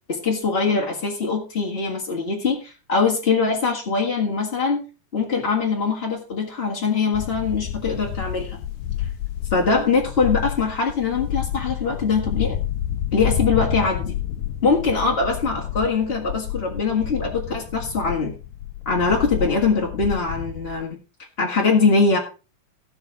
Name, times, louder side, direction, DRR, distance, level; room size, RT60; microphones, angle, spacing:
voice 1, 0.1-4.8 5.1-8.6 9.5-12.6 13.1-14.1 14.6-18.3 18.8-21.0 21.4-22.2, left 4 dB, 25° left, -1 dB, 1.3 m, -22 dB
sound 1, 7.1-20.8, left 11 dB, 75° left, 2.2 m, -29 dB
16.0 x 5.9 x 5.1 m, 0.34 s
omnidirectional pair, 4.1 m